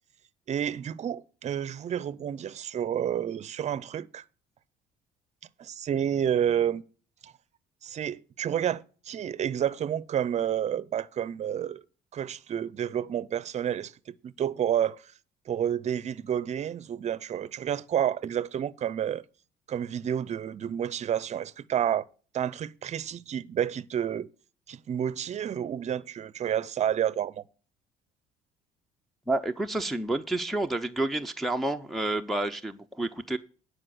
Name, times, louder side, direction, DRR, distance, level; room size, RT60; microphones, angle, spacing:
voice 1, 0.5-4.2 5.6-6.8 7.2-7.3 7.8-11.8 12.1-15.1 15.5-19.2 19.7-22.0 22.3-24.3 24.7-27.4, right 9 dB, 40° right, 0.6 m, -30 dB
voice 2, 29.3-33.4, right 2 dB, ahead, 0.7 m, -29 dB
10.0 x 5.0 x 7.9 m
cardioid pair, 110°, 17 cm